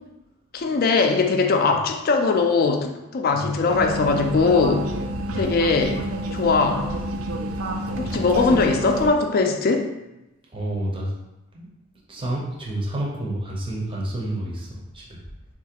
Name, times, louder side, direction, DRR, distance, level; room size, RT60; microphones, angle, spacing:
voice 1, 0.5-4.9 5.4-6.0 6.3-6.9 8.0-9.9, left 4 dB, 45° left, 4 dB, 0.3 m, -20 dB
sound 1, 3.7-9.1, right 1 dB, 80° right, 0.4 m, -29 dB
voice 2, 7.9-8.6 10.5-11.1 11.5-11.7 12.1-15.2, right 1 dB, 25° right, -4 dB, 0.6 m, -30 dB
3.9 x 2.4 x 2.8 m, 0.97 s
head